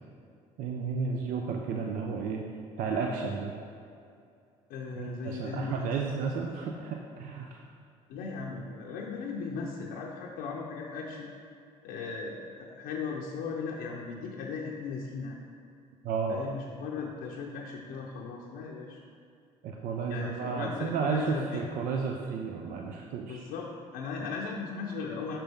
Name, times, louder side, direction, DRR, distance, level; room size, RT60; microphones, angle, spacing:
voice 1, 0.6-2.4 2.8-3.5 4.9-7.6 16.0-16.4 19.6-23.5, right 5 dB, 70° right, 1 dB, 0.5 m, -32 dB
voice 2, 4.7-6.5 8.1-11.3 11.8-15.4 16.3-19.0 20.1-21.6 23.3-25.4, left 5 dB, 75° left, -2 dB, 0.6 m, -37 dB
5.9 x 5.1 x 3.4 m, 2.4 s
supercardioid pair, 75°, 15 cm